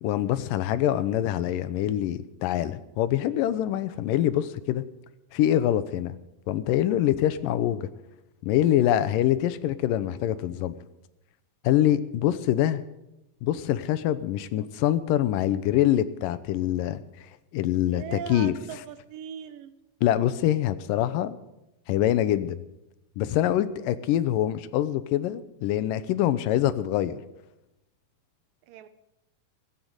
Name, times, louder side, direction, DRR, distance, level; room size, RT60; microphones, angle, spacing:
voice 1, 0.0-4.8 5.3-6.2 6.5-7.9 8.4-10.8 11.6-12.8 13.4-18.5 20.0-21.4 21.9-22.6 23.2-27.2, left 12 dB, 85° left, 14 dB, 2.4 m, -25 dB
voice 2, 17.8-19.7 28.7-28.9, right 9 dB, 90° right, 12 dB, 2.6 m, -39 dB
17.0 x 8.7 x 7.9 m, 0.90 s
omnidirectional pair, 3.8 m